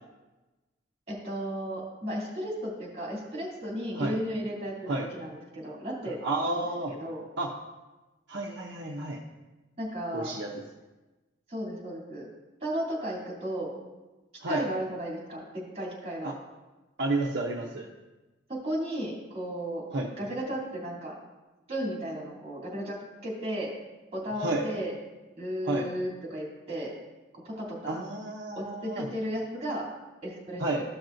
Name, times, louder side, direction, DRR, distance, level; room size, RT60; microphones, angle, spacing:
voice 1, 1.1-6.2 6.5-6.6 6.9-7.2 9.8-10.3 11.5-12.3 12.6-13.7 14.5-16.3 18.5-19.8 20.2-21.2 21.7-23.7 24.1-24.9 25.4-26.9 27.3-28.0 28.5-29.9 30.2-30.6, equal, 35° right, -4 dB, 2.9 m, -34 dB
voice 2, 6.2-6.9 7.4-7.5 8.3-9.2 10.1-10.5 14.4-14.7 16.2-16.3 17.0-17.9 19.9-20.1 24.4-24.7 25.7-25.9 27.9-29.1 30.6-30.8, right 2 dB, 65° right, -1 dB, 0.8 m, -30 dB
14.5 x 6.0 x 2.6 m, 1.1 s
head